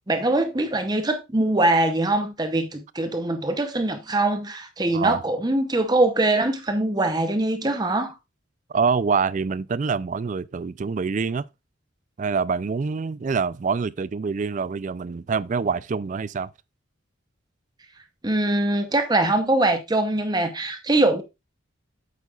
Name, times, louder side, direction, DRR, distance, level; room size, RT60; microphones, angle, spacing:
voice 1, 0.1-8.1 18.2-21.2, right 2 dB, 20° right, 0.7 m, -22 dB
voice 2, 8.7-11.5 12.2-16.5, right 5 dB, 35° right, 0.3 m, -25 dB
8.3 x 8.3 x 2.4 m
head